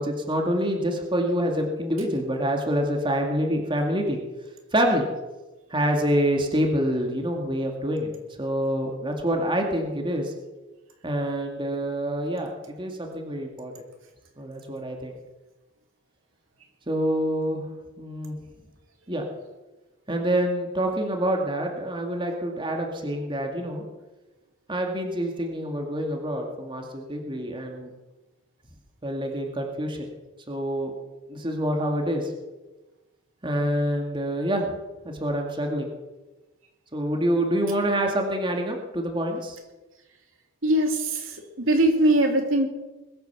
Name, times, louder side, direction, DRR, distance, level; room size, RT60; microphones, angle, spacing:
voice 1, 0.0-4.2 4.7-5.1 5.7-8.1 8.4-10.3 11.0-13.7 14.4-15.1 16.9-17.6 18.0-18.4 19.1-19.3 20.1-23.8 24.7-27.9 29.0-30.1 30.5-30.9 31.3-32.3 33.4-34.7 35.0-35.9 36.9-39.6, equal, 25° right, 2 dB, 2.2 m, -26 dB
voice 2, 40.6-42.7, right 1 dB, 75° right, 3 dB, 2.7 m, -21 dB
21.5 x 9.3 x 7.0 m, 1.1 s
head